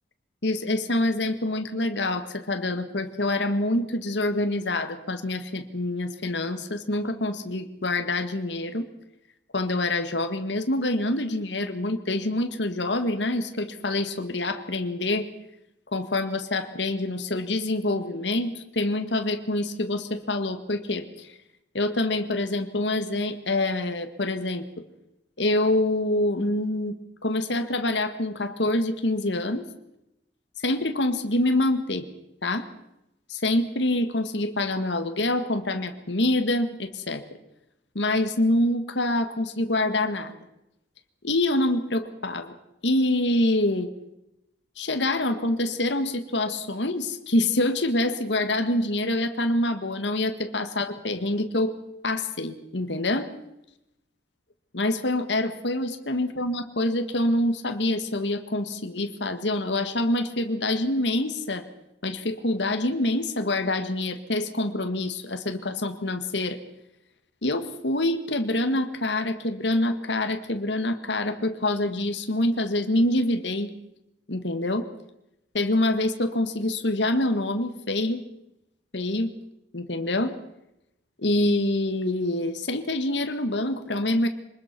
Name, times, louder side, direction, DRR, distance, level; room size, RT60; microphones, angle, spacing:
voice 1, 0.4-8.9 9.5-15.3 15.9-21.4 21.7-24.8 25.4-27.0 27.2-29.7 30.6-32.1 32.4-32.7 33.3-37.2 38.0-40.4 41.2-42.6 42.8-43.9 44.8-51.8 52.0-53.3 54.7-61.7 62.0-66.6 67.4-73.7 74.3-74.9 75.5-78.2 78.9-79.3 79.7-80.4 81.2-84.3, left 1 dB, 80° left, 8 dB, 1.8 m, -26 dB
24.5 x 20.5 x 6.1 m, 0.85 s
head